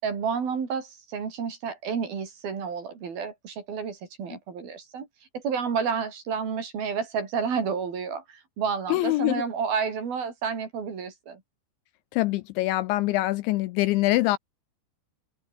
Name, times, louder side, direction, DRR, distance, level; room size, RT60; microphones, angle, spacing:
voice 1, 0.0-5.1 5.3-11.4, right 6 dB, 50° right, 5.3 m, -30 dB
voice 2, 8.9-9.4 12.1-14.4, left 18 dB, 80° left, 2.8 m, -24 dB
omnidirectional pair, 5.8 m